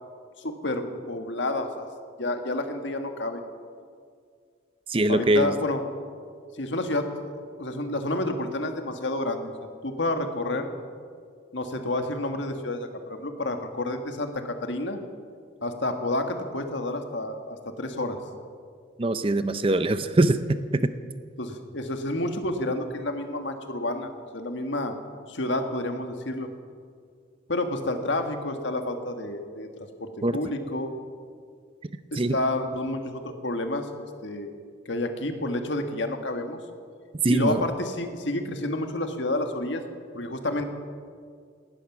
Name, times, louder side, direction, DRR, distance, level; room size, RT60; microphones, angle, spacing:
voice 1, 0.4-1.9 2.2-3.4 5.1-5.8 6.6-7.3 7.6-9.5 9.8-10.7 11.5-15.0 15.6-18.2 21.4-25.0 25.3-26.5 27.5-30.9 32.1-34.5 34.8-36.6 37.3-39.8 40.1-40.6, left 1 dB, 70° left, 6 dB, 1.5 m, -29 dB
voice 2, 4.9-5.5 19.0-20.9 30.2-30.4 32.2-32.4 37.2-37.6, right 2 dB, 30° right, 12 dB, 0.5 m, -23 dB
18.5 x 13.0 x 6.0 m, 2.1 s
head